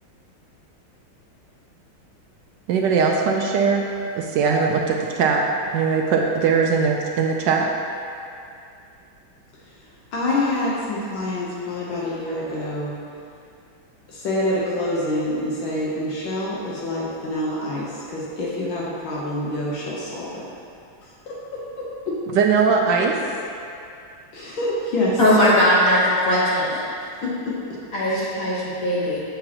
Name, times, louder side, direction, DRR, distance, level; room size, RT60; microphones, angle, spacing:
voice 1, 2.7-3.9 4.1-5.4 5.7-7.7 22.3-23.2, right 5 dB, 75° right, 1 dB, 1.0 m, -20 dB
voice 2, 10.1-12.9 14.1-20.5 21.3-22.2 24.3-25.4 27.2-27.6 28.1-28.4, left 1 dB, 70° left, -6 dB, 1.7 m, -26 dB
voice 3, 25.2-26.0 26.2-26.8 27.9-29.2, left 1 dB, 50° left, -9 dB, 1.4 m, -19 dB
7.7 x 7.3 x 2.9 m, 2.5 s
omnidirectional pair, 2.3 m